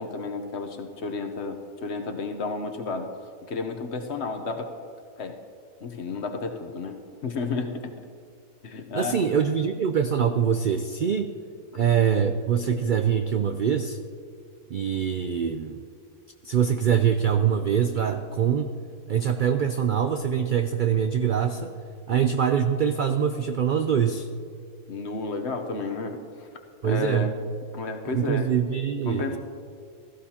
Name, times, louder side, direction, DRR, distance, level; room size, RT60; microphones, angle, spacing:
voice 1, 0.0-3.1 3.5-4.7 5.2-5.4 5.8-7.9 8.6-9.2 11.7-11.9 22.1-22.2 24.9-26.5 26.8-27.3 27.7-28.5 29.0-29.4, left 3 dB, 55° left, 5 dB, 1.1 m, -32 dB
voice 2, 8.9-11.3 11.7-14.0 14.7-15.8 16.4-18.7 19.1-21.7 22.1-24.3 26.8-27.3 28.1-29.4, right 8 dB, 70° right, 7 dB, 0.4 m, -24 dB
16.5 x 14.0 x 2.9 m, 2.2 s
omnidirectional pair, 1.4 m